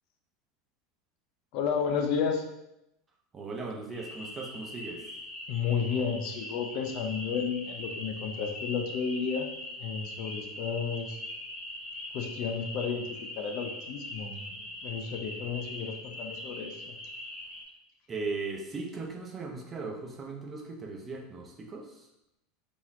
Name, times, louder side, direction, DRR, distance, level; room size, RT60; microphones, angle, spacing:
voice 1, 1.5-2.4 5.5-9.5 9.8-11.2 12.1-13.0 13.4-16.9, left 6 dB, 60° left, 4 dB, 0.5 m, -32 dB
voice 2, 3.3-5.0 18.1-22.1, right 3 dB, 25° right, 1 dB, 0.7 m, -38 dB
sound 1, 3.9-17.6, left 1 dB, 25° left, 0.9 m, -41 dB
3.8 x 2.9 x 2.6 m, 0.85 s
supercardioid pair, 110°, 0 cm